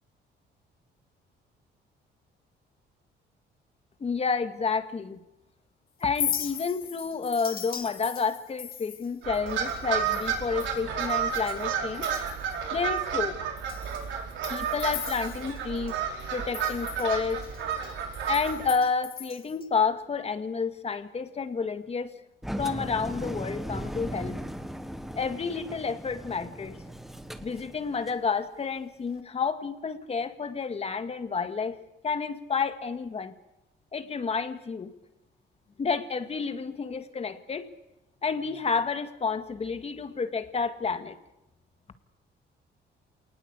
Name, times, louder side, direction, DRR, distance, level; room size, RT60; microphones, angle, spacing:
voice 1, 4.0-5.2 6.0-12.1 12.7-13.4 14.5-16.0 16.3-17.5 18.3-22.1 22.6-24.4 25.2-26.8 27.4-31.8 32.0-33.3 33.9-34.9 35.8-37.7 38.2-41.2, left 5 dB, 35° left, 9 dB, 1.9 m, -30 dB
Chink clink, 6.0-11.7 11.9-12.6 13.0-13.1 13.6-15.9 16.2-19.7, left 8 dB, 50° left, 2.0 m, -38 dB
sound 1, 9.2-18.7, right 7 dB, 85° right, 5.0 m, -31 dB
Engine, 22.4-28.3, equal, ahead, 1.4 m, -37 dB
28.0 x 19.5 x 8.3 m, 0.93 s
cardioid pair, 125°, 19 cm